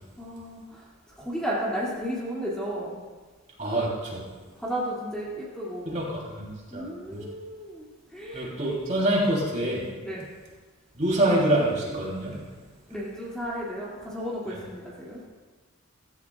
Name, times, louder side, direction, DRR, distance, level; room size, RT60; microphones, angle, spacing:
voice 1, 0.2-0.9 1.2-3.0 4.5-6.0 6.7-8.5 10.0-10.3 12.9-15.3, equal, 5° left, -7 dB, 2.3 m, -33 dB
voice 2, 3.6-4.2 5.8-6.0 6.3-6.5 6.7-7.2 8.3-9.8 11.0-12.4, right 1 dB, 35° right, -4 dB, 3.1 m, -25 dB
16.0 x 15.0 x 2.4 m, 1.4 s
head